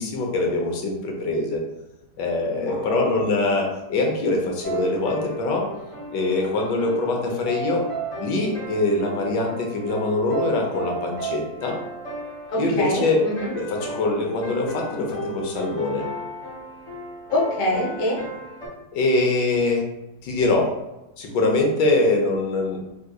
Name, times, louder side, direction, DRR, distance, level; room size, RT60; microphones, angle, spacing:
voice 1, 0.0-1.6 2.2-5.6 6.1-7.8 8.2-11.8 12.6-13.2 13.5-16.0 18.9-19.8 20.2-20.7 21.2-22.8, left 2 dB, 90° left, 1 dB, 1.4 m, -23 dB
voice 2, 2.4-3.2 12.5-13.5 17.3-18.2, left 1 dB, 45° left, -4 dB, 0.7 m, -26 dB
sound 1, 4.6-18.7, right 2 dB, 25° left, 1.4 m, -35 dB
3.7 x 2.8 x 2.2 m, 0.95 s
omnidirectional pair, 1.9 m